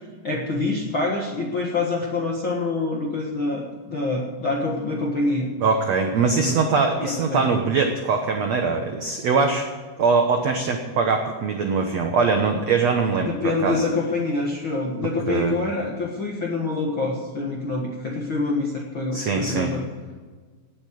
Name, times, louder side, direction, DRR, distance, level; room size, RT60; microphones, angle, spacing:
voice 1, 0.2-5.5 6.3-6.6 7.0-7.6 13.2-19.9, left 3 dB, 55° left, -1 dB, 1.4 m, -26 dB
voice 2, 5.6-9.6 10.0-13.8 15.3-15.5 19.1-19.7, right 4 dB, 75° right, 4 dB, 1.5 m, -22 dB
18.0 x 8.9 x 6.4 m, 1.4 s
omnidirectional pair, 4.8 m